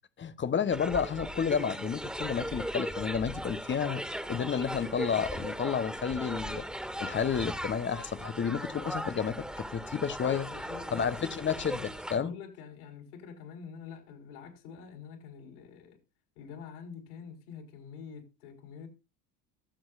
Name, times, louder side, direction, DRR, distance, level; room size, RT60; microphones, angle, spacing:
voice 1, 0.2-4.0 4.3-6.7 7.0-10.5 10.9-12.3, left 7 dB, 25° left, 1.1 m, -31 dB
sound 1, 0.7-12.2, equal, ahead, 2.3 m, -38 dB
voice 2, 10.2-11.4 12.2-16.0 16.3-18.9, left 7 dB, 70° left, 5.1 m, -46 dB
22.5 x 7.7 x 2.6 m
hypercardioid pair, 75°, 47 cm